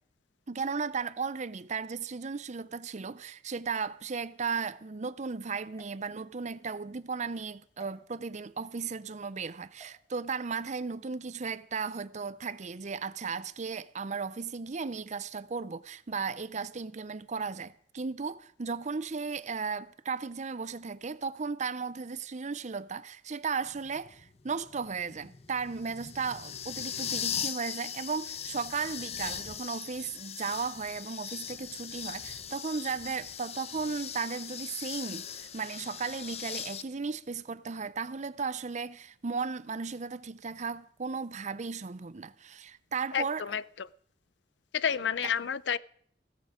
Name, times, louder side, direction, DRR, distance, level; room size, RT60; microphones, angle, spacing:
voice 1, 0.5-43.4, right 5 dB, 40° right, 0.6 m, -35 dB
sound 1, 5.7-6.7 7.8-7.9 9.7-10.0, right 1 dB, 15° left, 3.9 m, -58 dB
sound 2, 23.7-36.8, left 8 dB, 35° left, 0.7 m, -39 dB
voice 2, 43.1-43.9 44.7-45.8, left 7 dB, 75° left, 0.5 m, -30 dB
16.0 x 13.5 x 5.0 m
head